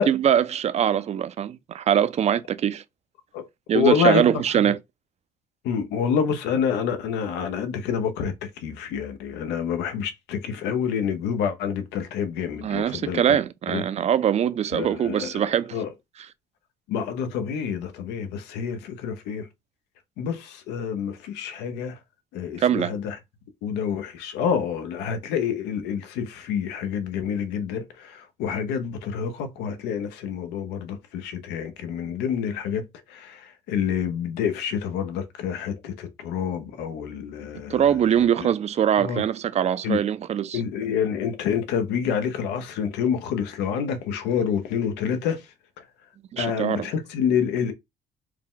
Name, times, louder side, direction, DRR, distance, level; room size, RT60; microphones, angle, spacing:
voice 1, 0.0-2.8 3.7-4.8 12.6-15.8 22.6-22.9 37.7-40.6 46.3-46.9, right 9 dB, 40° right, 0.4 m, -22 dB
voice 2, 3.7-4.4 5.6-13.4 13.7-13.8 14.7-15.9 16.9-19.5 20.2-22.0 22.3-23.2 23.6-38.3 39.0-39.2 39.8-40.0 40.5-45.5 46.4-47.7, left 7 dB, 90° left, 0.8 m, -27 dB
4.6 x 2.2 x 3.7 m
cardioid pair, 110°, 17 cm